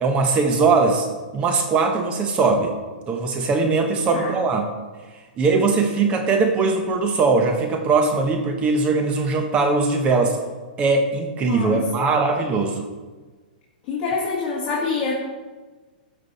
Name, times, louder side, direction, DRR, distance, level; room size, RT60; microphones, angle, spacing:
voice 1, 0.0-1.1 1.3-2.7 3.1-4.7 5.4-10.4 10.8-12.9, right 4 dB, 25° right, 5 dB, 0.9 m, -20 dB
voice 2, 11.5-12.2 13.9-15.1, left 4 dB, 35° left, -5 dB, 1.7 m, -26 dB
13.0 x 5.5 x 4.1 m, 1.3 s
hypercardioid pair, 145°, 5 cm